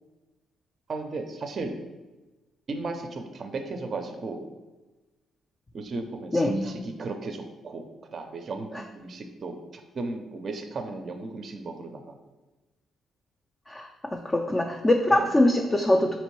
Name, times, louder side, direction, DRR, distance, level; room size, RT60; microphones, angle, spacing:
voice 1, 0.9-1.8 2.7-4.4 5.7-7.9 8.1-12.2 15.1-15.3, right 3 dB, 50° right, 6 dB, 0.4 m, -35 dB
voice 2, 13.7-16.2, left 1 dB, 20° left, 2 dB, 0.3 m, -23 dB
4.3 x 2.9 x 3.1 m, 1.1 s
cardioid pair, 90°, 0 cm